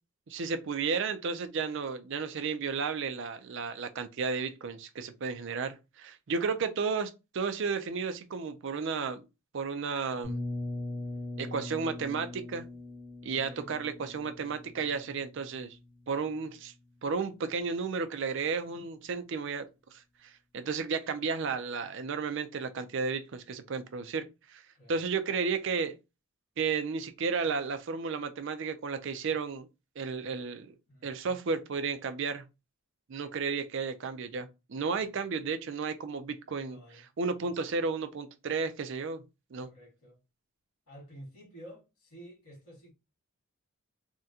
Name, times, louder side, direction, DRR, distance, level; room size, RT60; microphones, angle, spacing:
voice 1, 0.3-9.3 9.5-10.4 11.4-12.7 13.2-15.8 16.1-16.7 17.0-19.7 19.9-24.6 24.9-26.0 26.6-29.7 30.0-30.7 31.0-32.4 33.1-39.2 39.5-39.7, right 5 dB, 55° right, 0.4 m, -33 dB
sound 1, 10.2-16.0, left 2 dB, 60° left, 1.4 m, -40 dB
voice 2, 13.4-13.7 24.7-25.1 30.9-31.3 36.5-37.1 37.4-37.5 39.6-40.2 40.9-42.9, equal, 90° left, 2.0 m, -51 dB
3.6 x 2.2 x 2.7 m
head